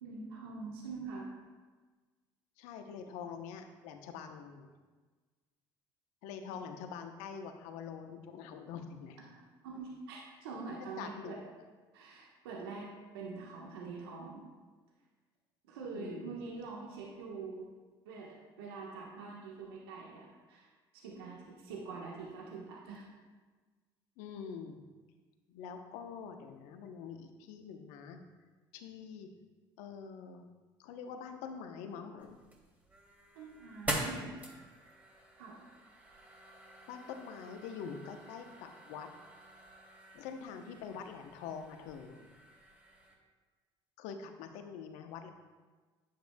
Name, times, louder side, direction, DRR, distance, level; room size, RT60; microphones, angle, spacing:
voice 1, 0.0-1.3 9.6-11.4 11.9-14.5 15.7-17.7 18.0-20.7 20.9-23.1 33.3-34.4 35.4-35.6, right 4 dB, 85° right, -2 dB, 1.3 m, -44 dB
voice 2, 2.6-4.7 6.2-9.3 10.8-11.3 15.9-16.4 24.2-24.8 25.5-28.2 28.7-29.3 29.8-30.4 30.8-32.4 36.9-39.1 40.1-42.2 44.0-45.3, left 6 dB, 75° left, 6 dB, 0.9 m, -45 dB
sound 1, 32.2-43.1, right 1 dB, 15° right, 2.7 m, -45 dB
10.0 x 8.5 x 2.3 m, 1.4 s
hypercardioid pair, 65°, 12 cm